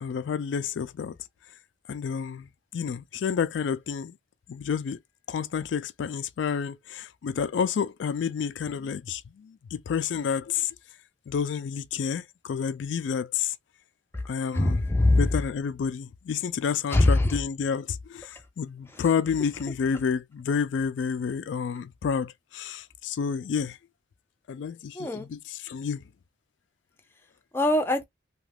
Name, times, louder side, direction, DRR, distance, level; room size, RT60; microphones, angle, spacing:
voice 1, 0.0-1.1 1.9-4.2 4.5-5.0 5.3-10.8 11.3-13.6 14.3-14.8 15.1-23.8 24.5-26.0, left 6 dB, 80° left, 0.3 m, -30 dB
voice 2, 14.5-15.3 16.9-17.4 18.3-18.4 18.9-19.0 24.9-25.3 27.5-28.0, left 2 dB, 10° left, 0.5 m, -22 dB
2.8 x 2.4 x 3.3 m
head